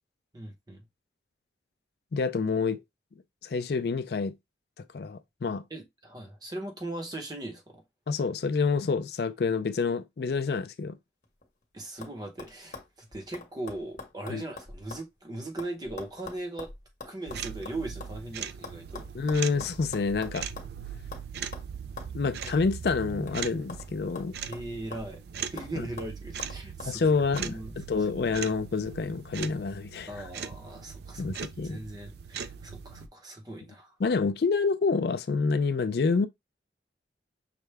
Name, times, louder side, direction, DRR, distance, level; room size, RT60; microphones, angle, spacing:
voice 1, 0.3-0.8 5.7-7.8 11.7-16.7 17.0-19.1 24.5-25.2 25.5-27.8 30.1-33.9, right 2 dB, 20° right, 0.8 m, -39 dB
voice 2, 2.1-2.8 3.4-4.3 4.9-5.6 8.1-11.0 14.3-14.4 19.1-20.5 22.1-24.4 26.9-30.1 31.2-31.8 34.0-36.3, left 4 dB, 60° left, 0.4 m, -28 dB
sound 1, 11.2-11.6 12.0-12.1 12.4-15.1 15.3-18.2 18.6-20.8 21.1-21.3 21.5-21.7 22.0-22.1 22.4-22.6 22.9-23.9 24.2-25.2 25.6-25.7 26.0-26.9 27.4-27.5, left 3 dB, 45° left, 1.1 m, -44 dB
sound 2, 17.3-33.1, right 7 dB, 60° right, 0.4 m, -40 dB
5.8 x 2.1 x 3.3 m
head